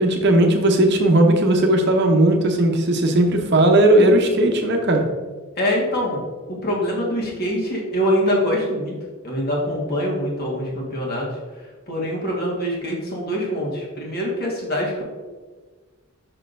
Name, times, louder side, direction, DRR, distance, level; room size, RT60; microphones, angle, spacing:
voice 1, 0.0-5.0, right 1 dB, 50° right, 3 dB, 0.8 m, -17 dB
voice 2, 5.6-6.2 6.5-8.9 9.2-11.3 11.9-15.0, equal, 45° left, -3 dB, 1.6 m, -24 dB
6.5 x 5.9 x 2.6 m, 1.4 s
head